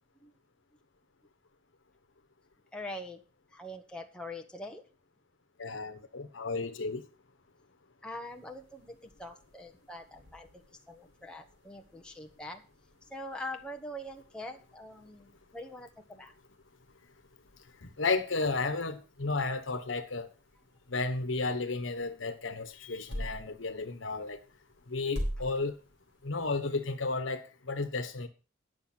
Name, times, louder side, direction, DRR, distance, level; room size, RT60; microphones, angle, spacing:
voice 1, 2.7-3.2 3.5-4.8 8.0-10.5 10.9-12.6 13.1-16.3, left 1 dB, 5° left, 1.1 m, -43 dB
voice 2, 5.6-7.0 17.8-20.3 20.9-24.4 24.9-25.8 26.2-28.3, left 3 dB, 80° left, 1.2 m, -33 dB
sound 1, 8.2-26.8, equal, 65° right, 4.8 m, -47 dB
10.5 x 6.9 x 5.9 m
head